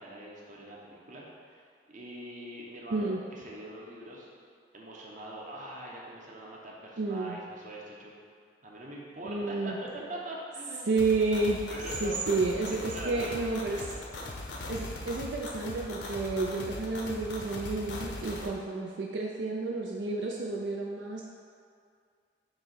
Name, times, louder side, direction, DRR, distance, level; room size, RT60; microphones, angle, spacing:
voice 1, 0.0-4.3 4.7-8.1 8.6-10.9 11.7-12.2 12.7-13.4 13.7-14.0, right 1 dB, 45° right, -3 dB, 1.0 m, -43 dB
voice 2, 2.9-3.2 7.0-7.4 9.2-9.8 10.9-11.6 12.0-13.8 14.7-21.2, right 3 dB, 75° right, -1 dB, 0.5 m, -30 dB
sound 1, 11.0-18.5, left 2 dB, 70° left, 0.7 m, -40 dB
7.5 x 3.0 x 4.5 m, 2.2 s
head